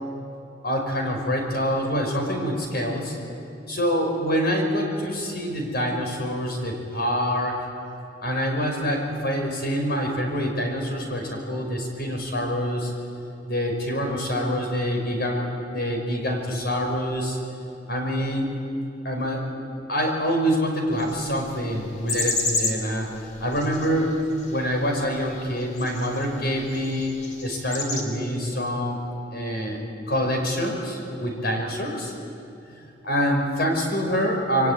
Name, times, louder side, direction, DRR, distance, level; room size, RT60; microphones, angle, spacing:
voice 1, 0.6-3.2 3.7-7.6 8.2-12.9 13.5-17.4 17.9-18.5 19.0-19.4 19.9-23.1 23.4-24.1 24.5-27.1 27.4-29.0 29.3-29.8 30.1-32.1 32.7-34.7, equal, 60° left, 2 dB, 5.6 m, -26 dB
sound 1, 20.9-28.0, left 3 dB, 45° left, 3.6 m, -32 dB
26.5 x 23.0 x 9.6 m, 2.7 s
head